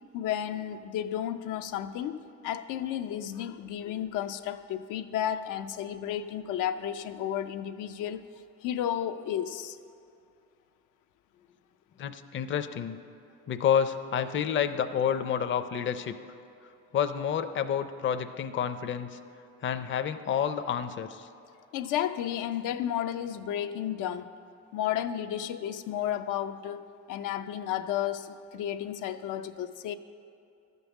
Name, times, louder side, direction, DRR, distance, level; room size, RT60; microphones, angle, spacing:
voice 1, 0.1-2.2 2.4-8.2 8.6-9.8 21.7-24.3 24.7-29.9, left 10 dB, 90° left, 9 dB, 0.5 m, -32 dB
voice 2, 12.0-13.0 13.5-16.2 16.9-19.2 19.6-21.3, left 8 dB, 40° left, 10 dB, 0.5 m, -29 dB
12.5 x 5.4 x 7.1 m, 2.6 s
cardioid pair, 90°, 30 cm